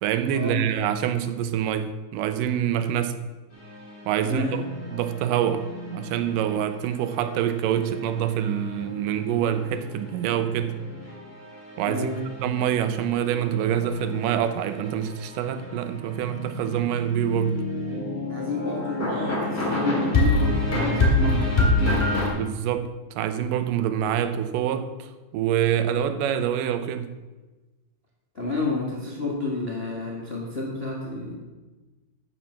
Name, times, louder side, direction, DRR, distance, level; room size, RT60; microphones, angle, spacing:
voice 1, 0.0-3.2 4.1-4.5 4.9-10.8 11.8-12.1 12.4-17.6 22.4-22.9 23.2-24.9 25.3-27.2, right 9 dB, 90° right, 10 dB, 2.3 m, -26 dB
sound 1, 3.5-22.3, left 2 dB, 20° left, 2.7 m, -29 dB
voice 2, 4.2-4.6 11.8-12.3 18.3-22.2 28.3-31.3, left 3 dB, 45° left, -3 dB, 0.8 m, -30 dB
9.5 x 5.7 x 7.2 m, 1.2 s
omnidirectional pair, 3.7 m